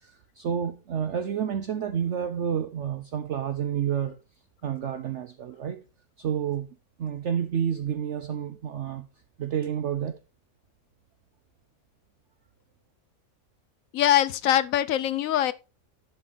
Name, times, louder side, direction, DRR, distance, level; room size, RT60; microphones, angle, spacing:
voice 1, 0.0-4.2 4.6-5.8 6.2-6.7 7.0-9.1 9.4-10.2, right 8 dB, 60° right, 0.9 m, -29 dB
voice 2, 13.9-15.5, left 11 dB, 70° left, 1.0 m, -23 dB
11.0 x 5.3 x 3.9 m
omnidirectional pair, 1.5 m